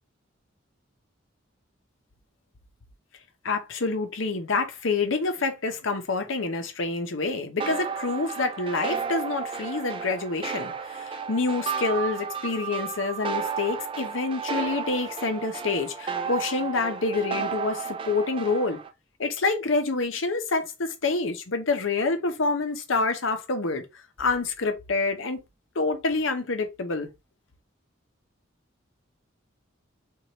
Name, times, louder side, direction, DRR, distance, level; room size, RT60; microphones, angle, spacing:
voice 1, 3.4-18.8 19.2-23.9 24.2-25.4 25.7-27.1, left 3 dB, 80° left, 0.8 m, -27 dB
sound 1, 7.6-18.9, right 6 dB, 25° right, 0.4 m, -33 dB
4.7 x 2.5 x 2.9 m
head